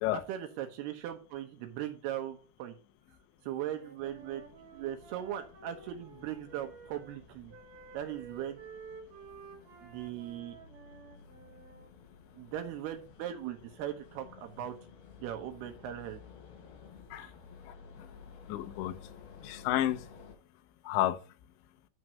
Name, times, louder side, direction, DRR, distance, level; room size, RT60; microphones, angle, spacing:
voice 1, 0.1-2.7 3.4-4.5 4.7-7.5 7.9-8.6 9.8-10.6 12.4-14.7 15.2-16.2 17.2-17.3, right 11 dB, 75° right, 2.5 m, -39 dB
Wind instrument woodwind instrument, 3.5-7.2 7.5-11.9, right 5 dB, 50° right, 2.9 m, -52 dB
sound 1, 4.0-20.3, left 6 dB, 60° left, 4.4 m, -55 dB
voice 2, 17.7-18.1 18.5-19.0 19.4-20.1 20.8-21.2, left 13 dB, 80° left, 2.8 m, -31 dB
9.6 x 4.7 x 6.2 m
omnidirectional pair, 5.7 m